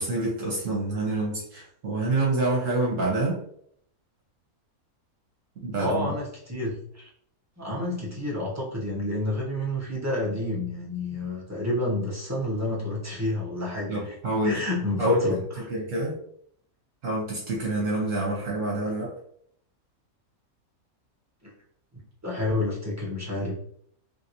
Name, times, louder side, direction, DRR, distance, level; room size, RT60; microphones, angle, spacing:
voice 1, 0.0-3.4 5.6-6.1 13.9-14.6 15.0-15.2 15.6-16.1 17.0-19.1, right 2 dB, 65° right, -3 dB, 1.1 m, -27 dB
voice 2, 5.8-7.1 7.6-14.1 14.4-15.4 21.4-21.5 22.2-23.6, left 1 dB, 15° right, -5 dB, 0.6 m, -29 dB
3.3 x 2.8 x 2.6 m, 0.66 s
omnidirectional pair, 1.5 m